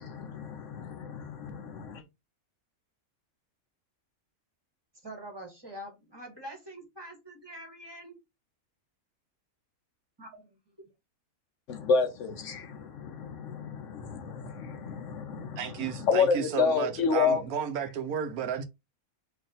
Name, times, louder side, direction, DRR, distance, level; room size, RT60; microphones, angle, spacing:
voice 1, 0.0-2.0 11.7-17.4, left 5 dB, 65° left, 0.9 m, -30 dB
voice 2, 5.0-8.2 10.2-10.7, right 1 dB, 20° right, 1.2 m, -45 dB
voice 3, 15.6-18.6, right 8 dB, 85° right, 1.2 m, -33 dB
3.3 x 2.7 x 3.9 m
omnidirectional pair, 1.5 m